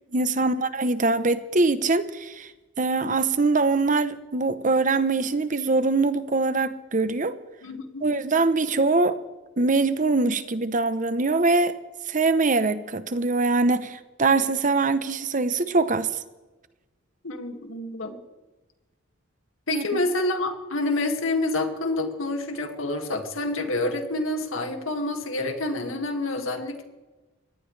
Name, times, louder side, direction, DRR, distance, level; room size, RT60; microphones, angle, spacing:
voice 1, 0.1-2.5 2.8-7.4 8.0-9.2 9.6-11.7 12.1-16.1 19.7-20.0, right 3 dB, 40° right, 12 dB, 0.9 m, -23 dB
voice 2, 7.6-8.1 17.2-18.2 19.7-26.8, left 2 dB, 90° left, 5 dB, 2.2 m, -28 dB
23.0 x 17.5 x 3.3 m, 1.2 s
head